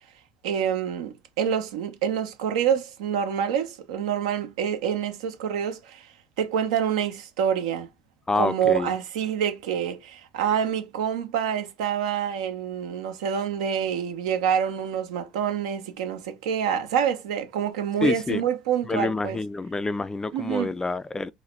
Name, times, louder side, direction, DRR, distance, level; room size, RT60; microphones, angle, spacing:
voice 1, 0.4-6.1 6.4-7.9 8.3-19.4 20.3-20.7, right 8 dB, 75° right, 0.8 m, -27 dB
voice 2, 8.3-8.9 18.0-18.4 18.8-21.3, left 3 dB, 15° left, 0.4 m, -27 dB
3.9 x 2.6 x 3.1 m
hypercardioid pair, 70°, 4 cm